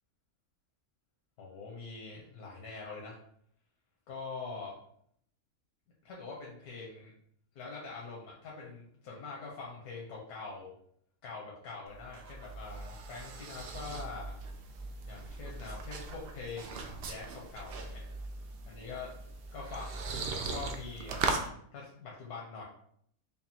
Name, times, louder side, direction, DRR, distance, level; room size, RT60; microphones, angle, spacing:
voice 1, 1.4-3.2 4.1-4.7 6.0-7.1 7.5-10.7 11.2-14.3 15.0-18.0 18.7-19.1 19.5-22.6, left 4 dB, 80° left, -4 dB, 1.3 m, -44 dB
sound 1, 11.9-21.5, right 4 dB, 85° right, 0.5 m, -39 dB
5.2 x 2.4 x 2.8 m, 0.66 s
omnidirectional pair, 1.6 m